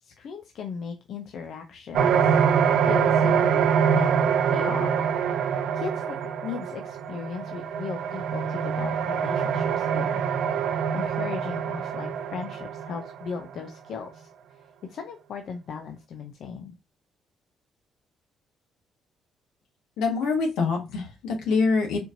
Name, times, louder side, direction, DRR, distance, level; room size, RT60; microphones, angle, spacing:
voice 1, 0.0-2.3 2.9-3.7 3.9-5.0 5.7-10.2 10.9-14.3 14.9-16.7, left 6 dB, 70° left, 6 dB, 0.5 m, -37 dB
sound 1, 1.9-13.4, right 7 dB, 75° right, 0.4 m, -25 dB
voice 2, 20.0-22.0, left 4 dB, 90° left, 2 dB, 1.3 m, -25 dB
4.3 x 2.9 x 2.5 m, 0.26 s
cardioid pair, 90°, 0 cm